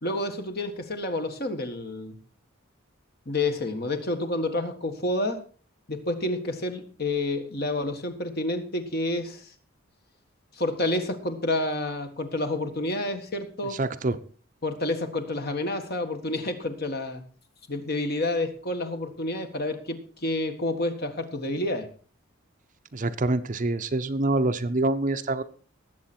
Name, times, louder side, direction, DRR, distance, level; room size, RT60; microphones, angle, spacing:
voice 1, 0.0-2.2 3.2-5.4 5.9-9.5 10.5-13.8 14.6-17.2 17.7-21.9, left 2 dB, 50° left, 6 dB, 1.7 m, -29 dB
voice 2, 13.8-14.2 22.9-25.4, right 2 dB, 40° right, 11 dB, 0.6 m, -26 dB
19.0 x 7.7 x 4.4 m, 0.41 s
head